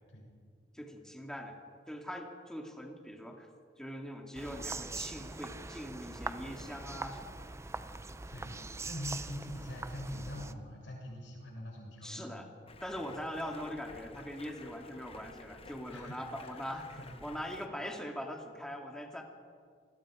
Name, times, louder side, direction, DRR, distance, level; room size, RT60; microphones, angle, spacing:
voice 1, 0.7-1.6 1.9-3.5 3.8-7.4 12.0-12.5 12.8-16.9 17.2-19.2, equal, 5° left, 1 dB, 2.3 m, -42 dB
sound 1, 4.3-10.5, right 3 dB, 15° right, 0.6 m, -42 dB
voice 2, 8.3-12.4 15.9-17.1, left 1 dB, 90° left, -1 dB, 7.5 m, -44 dB
Stream, 12.7-17.7, left 3 dB, 30° left, 1.0 m, -53 dB
27.0 x 20.0 x 5.0 m, 2.1 s
head